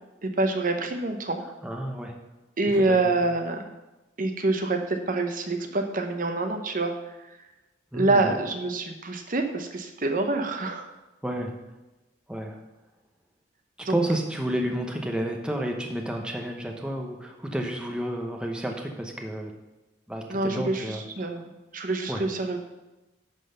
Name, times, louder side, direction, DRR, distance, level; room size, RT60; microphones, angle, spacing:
voice 1, 0.2-1.4 2.6-3.7 4.2-7.4 7.9-10.9 13.8-14.0 20.3-21.4 21.7-22.7, right 2 dB, 45° right, 5 dB, 0.8 m, -26 dB
voice 2, 1.6-2.2 3.1-3.2 7.9-8.3 11.2-11.5 12.3-12.6 13.8-19.5 20.1-21.0 22.1-22.2, right 1 dB, 5° right, 1 dB, 0.8 m, -30 dB
10.5 x 4.0 x 6.6 m, 1.1 s
head